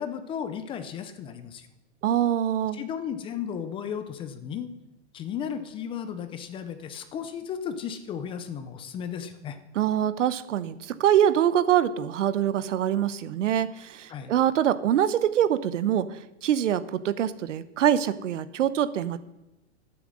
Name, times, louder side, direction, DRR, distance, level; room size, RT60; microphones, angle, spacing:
voice 1, 0.0-1.7 2.7-4.7 5.1-9.6 14.1-14.3, left 8 dB, 15° left, 10 dB, 0.5 m, -34 dB
voice 2, 2.0-2.8 9.7-19.2, right 10 dB, 80° right, 14 dB, 1.0 m, -24 dB
11.5 x 10.0 x 6.4 m, 0.94 s
hypercardioid pair, 150°, 37 cm